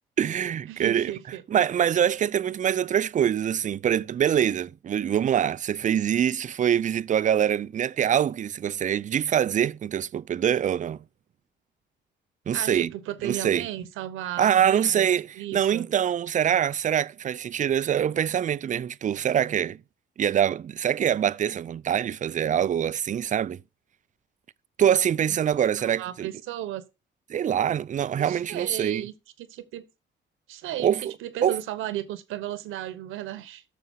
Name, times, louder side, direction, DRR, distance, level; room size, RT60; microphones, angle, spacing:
voice 1, 0.2-1.1 1.5-11.0 12.5-12.9 13.2-13.7 14.4-15.3 15.5-19.8 20.2-23.6 24.8-26.3 27.3-29.1 30.8-31.1 31.4-31.6, right 9 dB, 40° right, 0.4 m, -24 dB
voice 2, 0.7-1.4 12.5-15.1 15.3-15.9 25.8-26.8 28.2-29.8 30.5-33.6, right 13 dB, 90° right, 1.0 m, -35 dB
6.8 x 5.6 x 6.3 m
cardioid pair, 90°, 20 cm